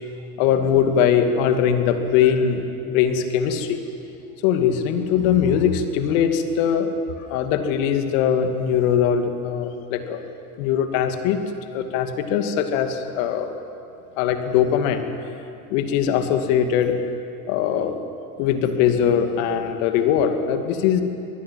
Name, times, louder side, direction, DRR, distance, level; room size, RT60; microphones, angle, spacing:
voice 1, 0.4-3.8 4.4-6.9 7.3-10.2 10.6-11.4 11.7-13.6 14.2-15.0 15.7-16.9 17.5-17.9 18.4-21.0, left 8 dB, 65° left, 7 dB, 2.5 m, -21 dB
25.5 x 20.0 x 7.6 m, 2.6 s
hypercardioid pair, 90°, 42 cm